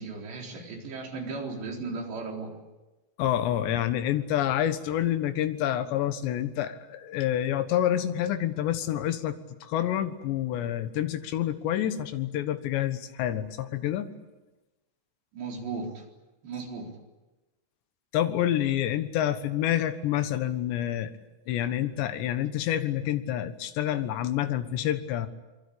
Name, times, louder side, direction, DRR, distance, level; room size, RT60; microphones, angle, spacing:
voice 1, 0.0-2.5 15.3-16.1 16.4-16.9, right 4 dB, 60° right, 0 dB, 6.1 m, -36 dB
voice 2, 3.2-14.1 18.1-21.1 21.5-25.3, left 11 dB, 70° left, 10 dB, 3.4 m, -28 dB
26.0 x 23.5 x 8.7 m, 1.1 s
omnidirectional pair, 5.6 m